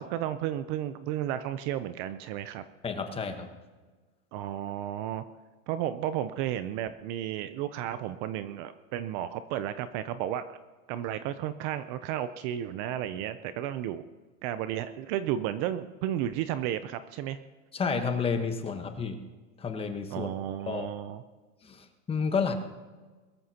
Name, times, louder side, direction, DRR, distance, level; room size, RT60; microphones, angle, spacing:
voice 1, 0.0-2.6 4.3-5.2 5.7-10.6 10.9-14.0 14.4-17.4 20.1-21.2, right 11 dB, 40° right, 12 dB, 0.6 m, -33 dB
voice 2, 2.8-3.5 17.7-19.2 19.6-20.3 20.7-20.9 21.6-22.5, left 5 dB, 15° left, 6 dB, 1.2 m, -30 dB
22.0 x 13.5 x 2.9 m, 1.3 s
supercardioid pair, 145°, 40 cm